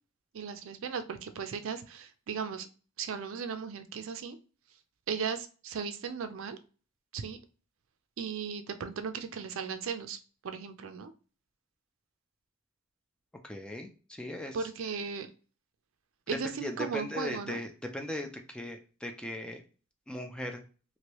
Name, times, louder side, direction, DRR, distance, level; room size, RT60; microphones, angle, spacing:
voice 1, 0.3-2.7 3.0-4.4 5.1-6.6 7.1-7.4 8.2-10.2 10.4-11.1 14.5-15.3 16.3-17.6, right 6 dB, 70° right, 9 dB, 0.4 m, -36 dB
voice 2, 13.4-14.7 16.4-19.6 20.1-20.6, left 1 dB, 5° left, 4 dB, 0.3 m, -38 dB
3.1 x 2.6 x 2.9 m, 0.37 s
head